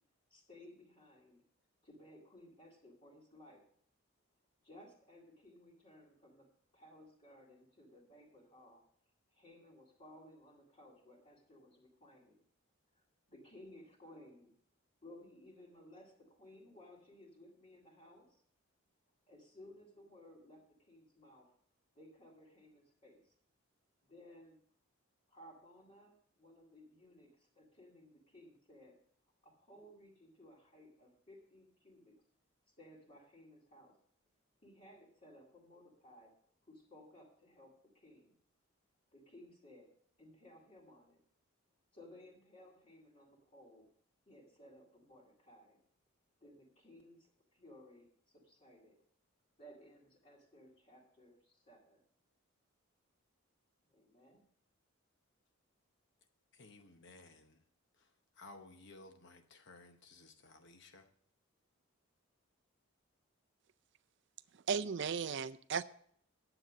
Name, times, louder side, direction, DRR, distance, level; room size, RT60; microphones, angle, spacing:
voice 1, 0.3-1.4 1.8-3.6 4.6-6.5 6.7-8.8 9.3-12.4 12.9-13.0 13.3-14.5 15.0-18.4 19.3-21.6 21.9-23.3 24.0-24.6 25.3-29.0 29.4-32.2 32.8-34.0 34.6-36.3 36.6-38.4 39.1-39.9 40.2-41.2 41.9-43.9 44.3-45.8 46.4-49.0 49.6-52.0 53.9-54.4, left 1 dB, 30° left, 2.2 m, -59 dB
voice 2, 56.5-57.6 58.0-58.1 58.3-61.1, left 2 dB, 55° left, 0.9 m, -57 dB
voice 3, 64.5-65.8, right 6 dB, 55° right, 0.4 m, -36 dB
9.9 x 7.9 x 6.3 m
head